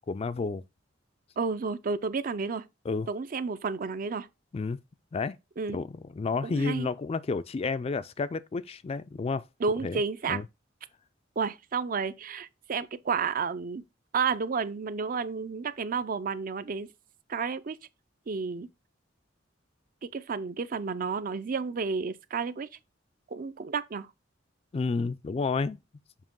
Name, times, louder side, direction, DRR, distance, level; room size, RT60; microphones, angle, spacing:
voice 1, 0.1-0.6 2.9-3.1 4.5-4.8 5.1-5.4 5.7-9.4 9.8-10.0 10.3-10.4 24.7-25.8, left 4 dB, 30° left, 0.3 m, -31 dB
voice 2, 1.4-2.6 3.1-4.3 5.6-5.8 6.4-6.9 9.6-10.4 11.4-13.8 14.1-16.9 17.3-17.8 18.3-18.7 20.0-22.7 23.3-24.1, right 5 dB, 45° right, 0.5 m, -31 dB
7.4 x 2.9 x 5.3 m
head